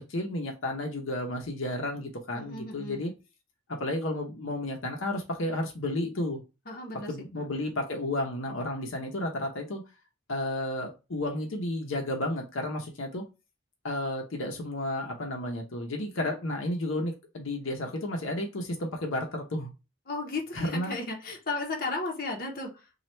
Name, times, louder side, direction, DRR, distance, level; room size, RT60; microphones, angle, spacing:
voice 1, 0.1-3.1 3.8-6.4 7.1-9.8 10.3-13.2 13.8-19.7 20.6-20.9, left 1 dB, 75° left, 2 dB, 0.7 m, -32 dB
voice 2, 2.3-3.1 6.7-7.4 20.1-22.9, left 3 dB, 45° left, 0 dB, 0.9 m, -35 dB
3.1 x 2.3 x 4.2 m, 0.29 s
head